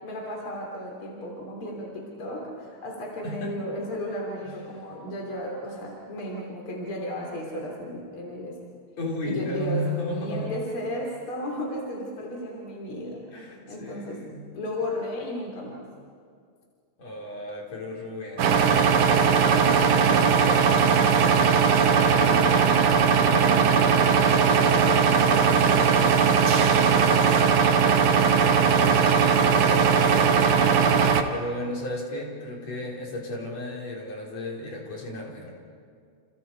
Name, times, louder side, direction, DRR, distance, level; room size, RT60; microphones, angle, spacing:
voice 1, 0.0-8.6 9.2-13.3 13.7-14.2 14.5-15.9 22.1-27.7, left 1 dB, 45° left, -1 dB, 3.9 m, -34 dB
voice 2, 3.2-3.6 4.4-4.6 9.0-10.7 13.3-14.5 17.0-20.6 28.8-29.2 29.5-29.9 31.3-35.5, left 1 dB, 60° left, -2 dB, 5.1 m, -34 dB
sound 1, 18.4-31.2, right 6 dB, 80° right, 2.6 m, -19 dB
30.0 x 29.5 x 4.6 m, 2.2 s
omnidirectional pair, 3.4 m